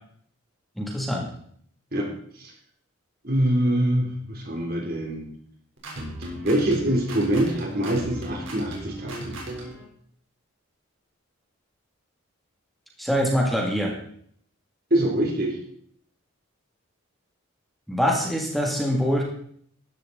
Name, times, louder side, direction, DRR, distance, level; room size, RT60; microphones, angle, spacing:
voice 1, 0.8-1.3 13.0-14.0 17.9-19.2, equal, ahead, -1 dB, 2.6 m, -24 dB
voice 2, 3.2-5.3 6.3-9.4 14.9-15.6, right 1 dB, 45° right, 1 dB, 3.4 m, -24 dB
sound 1, 5.8-9.8, right 1 dB, 60° right, 4.2 m, -36 dB
14.5 x 12.0 x 4.2 m, 0.63 s
head